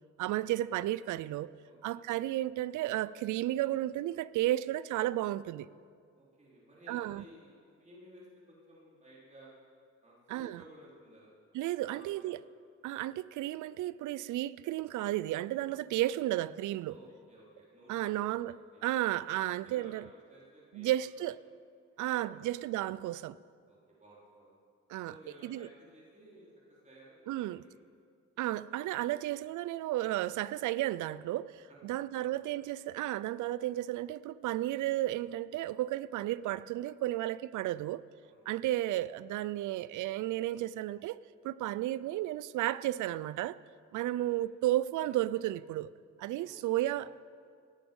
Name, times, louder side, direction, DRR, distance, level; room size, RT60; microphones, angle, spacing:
voice 1, 0.2-1.5 1.8-5.7 6.9-7.2 10.3-10.6 11.5-12.4 12.8-16.9 17.9-18.6 18.8-20.0 20.7-21.4 22.0-23.4 24.9-25.1 25.4-25.7 27.3-27.6 28.4-38.0 38.5-41.2 41.4-43.6 43.9-45.9 46.2-47.3, right 14 dB, 75° right, 0.5 m, -33 dB
voice 2, 1.6-2.0 6.1-9.5 10.0-11.3 11.8-12.3 15.9-16.0 16.9-18.4 18.7-18.8 19.6-20.0 20.3-21.3 22.1-22.4 23.7-24.5 25.0-27.7 31.7-32.4 38.2-38.6 44.0-44.4 46.4-47.1, right 1 dB, 25° right, 4.0 m, -57 dB
17.0 x 10.5 x 5.4 m
cardioid pair, 90°, 30 cm